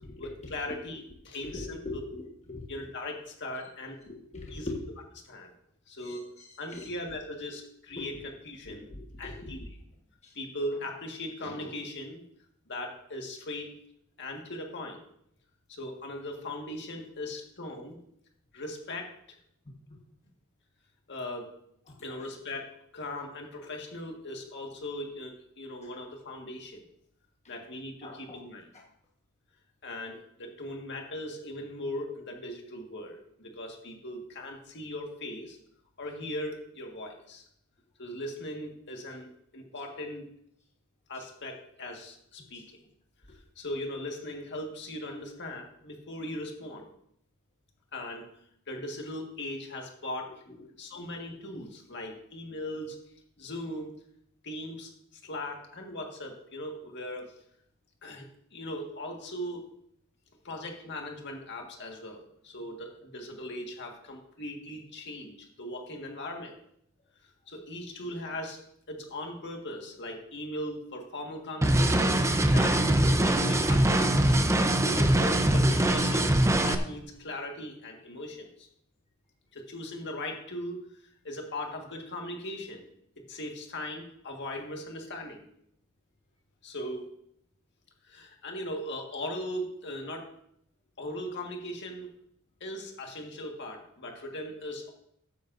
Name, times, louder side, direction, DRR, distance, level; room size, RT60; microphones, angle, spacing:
voice 1, 0.2-2.0 2.7-4.0 4.5-4.7 5.2-5.5 5.9-6.2 6.6-8.9 9.2-9.7 10.4-12.2 12.7-13.7 14.2-15.0 15.7-18.0 18.5-19.4 21.1-21.5 22.0-26.8 27.5-28.6 29.8-35.6 36.0-37.4 38.0-40.2 41.1-42.8 43.6-46.9 47.9-48.2 48.7-50.4 50.8-53.0 53.4-53.9 54.4-54.9 55.2-57.4 58.0-59.6 60.4-66.5 67.2-68.6 68.9-72.2 72.5-74.3 74.8-76.3 76.6-78.7 79.5-80.8 81.2-82.8 83.3-85.5 86.6-87.1 88.0-90.3 91.0-92.1 92.6-94.9, left 1 dB, 55° left, 2 dB, 1.8 m, -39 dB
voice 2, 1.4-2.7 4.1-4.8 6.0-6.2 6.7-6.9 7.9-8.1 8.6-9.5 10.2-10.3 28.0-28.4 50.5-50.6 51.0-51.1, left 2 dB, 30° left, -2 dB, 1.4 m, -41 dB
sound 1, 71.6-76.7, right 1 dB, 15° right, 0.6 m, -23 dB
14.0 x 9.5 x 2.7 m, 0.71 s
head